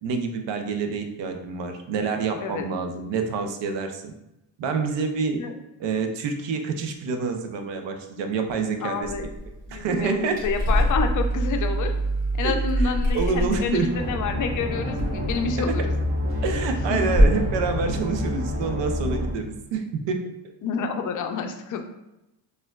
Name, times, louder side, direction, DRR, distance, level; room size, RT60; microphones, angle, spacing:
voice 1, 0.0-4.1 4.6-5.4 5.8-9.1 9.7-10.4 12.4-13.9 15.6-15.9 16.4-20.3, right 4 dB, 70° right, 5 dB, 0.6 m, -27 dB
voice 2, 8.8-9.3 9.7-11.9 12.4-15.9 16.9-17.2 20.6-21.8, left 5 dB, 45° left, 5 dB, 0.5 m, -28 dB
sound 1, 9.0-16.0 16.2-16.7 17.1-17.6 17.8-19.1, equal, 20° left, 1.3 m, -25 dB
sound 2, 13.9-19.3, left 1 dB, 30° right, 1.1 m, -28 dB
4.2 x 2.5 x 2.3 m, 0.90 s
cardioid pair, 85°, 46 cm